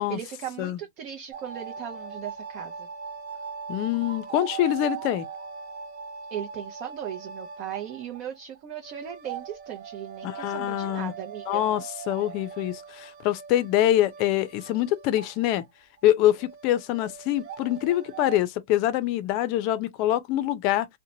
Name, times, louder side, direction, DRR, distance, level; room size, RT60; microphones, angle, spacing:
voice 1, 0.0-2.9 6.3-11.6, right 10 dB, 40° right, 0.6 m, -37 dB
sound 1, 1.3-15.7 16.0-16.1 16.4-18.4, right 6 dB, 55° right, 1.1 m, -40 dB
voice 2, 3.7-5.3 10.2-11.1 11.5-15.6 16.0-20.9, left 13 dB, 45° left, 0.5 m, -25 dB
2.8 x 2.1 x 2.7 m
hypercardioid pair, 130°, 0 cm